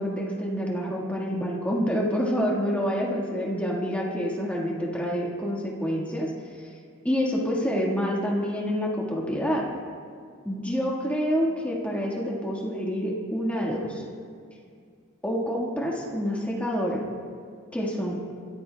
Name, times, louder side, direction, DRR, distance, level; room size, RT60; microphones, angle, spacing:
voice 1, 0.0-6.3 7.0-9.6 10.4-14.0 15.2-17.0 17.7-18.2, equal, 5° left, -3 dB, 1.6 m, -27 dB
21.5 x 14.0 x 2.3 m, 2.2 s
head